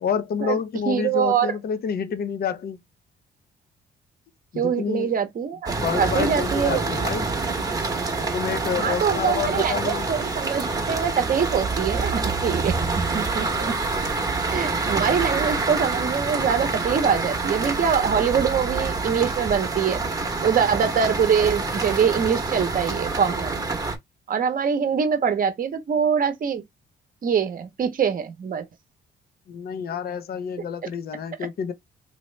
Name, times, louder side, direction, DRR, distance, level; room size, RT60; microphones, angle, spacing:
voice 1, 0.0-2.8 4.5-5.1 5.7-7.3 8.2-10.1 29.5-31.7, left 7 dB, 50° left, 0.6 m, -28 dB
voice 2, 0.9-1.5 4.6-6.9 8.8-12.8 13.1-13.8 14.4-20.0 20.4-23.6 24.3-26.6 27.2-28.6, right 7 dB, 45° right, 0.8 m, -24 dB
sound 1, 5.7-24.0, right 3 dB, 20° right, 0.9 m, -27 dB
3.0 x 2.7 x 3.2 m
cardioid pair, 90°, 20 cm